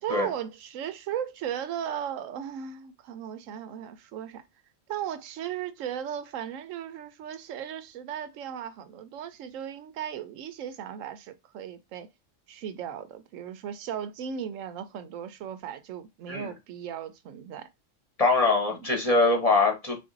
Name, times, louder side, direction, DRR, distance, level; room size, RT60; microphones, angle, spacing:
voice 1, 0.0-4.4 4.9-12.1 12.5-17.7 18.7-18.9, right 9 dB, 85° right, 1.0 m, -36 dB
voice 2, 18.2-20.0, left 3 dB, 35° left, 0.8 m, -23 dB
3.6 x 2.6 x 3.8 m
omnidirectional pair, 1.3 m